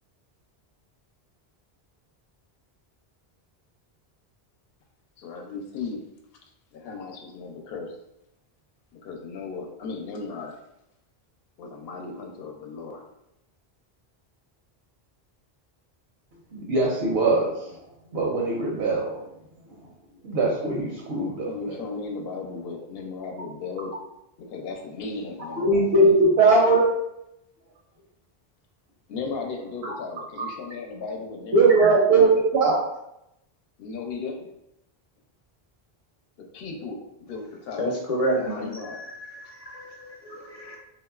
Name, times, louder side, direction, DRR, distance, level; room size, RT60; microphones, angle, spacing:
voice 1, 5.2-6.0 6.7-8.0 8.9-10.6 11.6-13.0 21.4-23.9 24.4-26.6 29.1-32.4 33.8-34.5 36.4-37.9 38.3-39.0, left 4 dB, 75° left, 2 dB, 0.8 m, -36 dB
voice 2, 16.5-17.5 18.1-19.2 20.2-21.7 25.6-26.8 30.4-30.5 31.5-32.8, right 3 dB, 80° right, -3 dB, 0.8 m, -20 dB
voice 3, 37.8-40.8, equal, 40° left, -1 dB, 0.6 m, -30 dB
2.9 x 2.4 x 2.3 m, 0.83 s
omnidirectional pair, 1.0 m